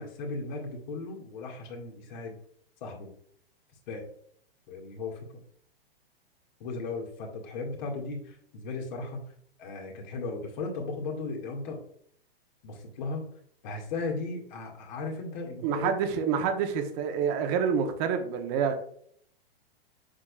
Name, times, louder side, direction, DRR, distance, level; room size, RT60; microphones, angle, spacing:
voice 1, 0.0-2.4 2.8-3.1 3.9-4.0 4.7-5.3 6.6-9.2 9.6-11.8 12.6-13.2 13.6-15.9, left 3 dB, 50° left, 2.2 m, -36 dB
voice 2, 15.6-18.8, right 7 dB, 40° right, 1.1 m, -27 dB
7.5 x 6.3 x 2.5 m
figure-of-eight pair, 110°, 31 cm